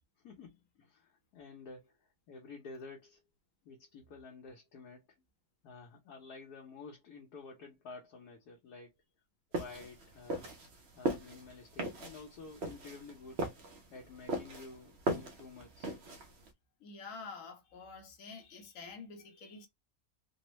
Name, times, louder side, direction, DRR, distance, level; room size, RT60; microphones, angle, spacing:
voice 1, 0.2-3.2 3.6-5.0 5.6-8.9 9.5-10.5 11.0-13.4 13.9-15.9, left 4 dB, 80° left, 1.4 m, -51 dB
sound 1, 9.5-16.5, right 1 dB, 55° right, 0.8 m, -38 dB
voice 2, 16.8-19.7, left 4 dB, 65° left, 1.1 m, -48 dB
3.4 x 2.1 x 3.0 m
omnidirectional pair, 1.6 m